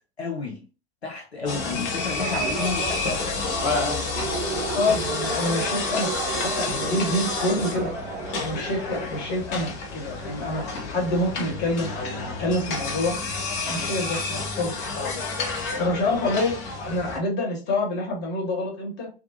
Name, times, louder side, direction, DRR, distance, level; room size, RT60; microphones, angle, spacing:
voice 1, 0.2-0.6 1.0-3.4, left 4 dB, 90° left, 0.8 m, -31 dB
sound 1, 1.5-17.2, left 3 dB, 50° left, 0.8 m, -29 dB
sound 2, 2.1-8.4, right 5 dB, 30° right, 0.4 m, -33 dB
voice 2, 4.7-7.9 8.4-13.2 13.7-15.1 15.8-16.6 16.8-19.1, left 1 dB, 35° left, 1.3 m, -27 dB
2.5 x 2.3 x 2.7 m
figure-of-eight pair, 85°, 31 cm